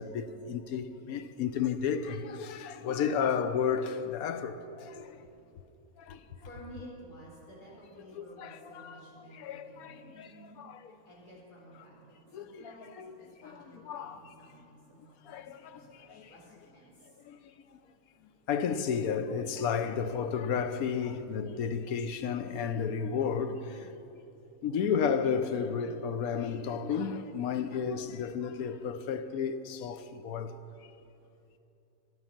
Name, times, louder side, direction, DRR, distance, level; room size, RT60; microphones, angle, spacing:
voice 1, 0.0-5.3 6.0-6.3 8.1-10.9 12.3-14.3 15.2-16.3 17.0-17.8 18.5-24.0 24.6-30.9, left 6 dB, 75° left, 1.1 m, -33 dB
voice 2, 6.4-10.6 11.1-13.0 13.4-14.8 15.1-17.3, right 1 dB, 90° left, 4.3 m, -52 dB
14.5 x 11.0 x 5.8 m
omnidirectional pair, 1.6 m